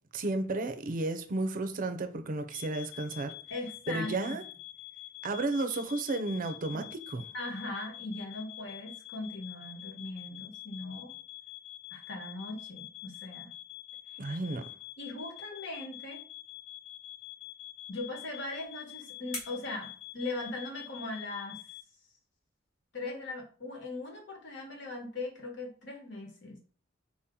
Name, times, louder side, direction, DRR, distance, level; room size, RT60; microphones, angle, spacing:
voice 1, 0.1-3.3 3.9-4.4 5.2-7.2 14.2-14.7, right 2 dB, 45° right, 0.5 m, -33 dB
sound 1, 2.5-21.8, left 17 dB, 30° left, 0.3 m, -47 dB
voice 2, 3.5-4.3 6.7-6.8 7.3-11.2 11.9-13.5 15.0-16.2 17.9-21.6 22.9-26.6, left 2 dB, 65° left, 1.4 m, -39 dB
sound 2, 18.3-20.9, left 2 dB, 85° left, 1.9 m, -47 dB
4.5 x 2.9 x 3.7 m
head